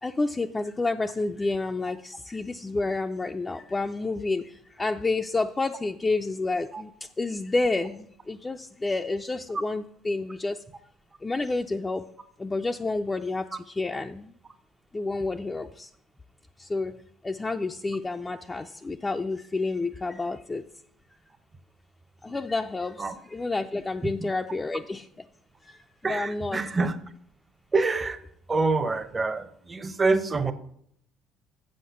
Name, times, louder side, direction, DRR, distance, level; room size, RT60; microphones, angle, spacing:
voice 1, 0.0-10.6 11.2-12.1 12.4-14.3 14.9-15.9 16.6-16.9 17.2-20.6 22.2-25.1 25.6-26.6, left 3 dB, 20° left, 4 dB, 0.5 m, -29 dB
voice 2, 26.0-27.1 27.7-28.2 28.5-30.5, right 3 dB, 25° right, 10 dB, 0.9 m, -26 dB
7.6 x 6.5 x 5.7 m, 0.68 s
hypercardioid pair, 65°, 0 cm